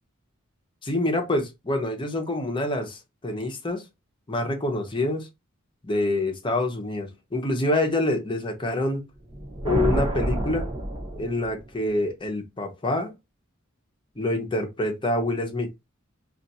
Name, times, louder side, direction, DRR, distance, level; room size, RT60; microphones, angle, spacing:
voice 1, 0.8-3.8 4.3-5.3 5.8-9.0 9.6-10.7 11.2-13.1 14.2-15.7, left 1 dB, 25° left, 0.8 m, -26 dB
sound 1, 9.2-11.7, right 1 dB, 25° right, 1.0 m, -28 dB
2.5 x 2.5 x 4.1 m
head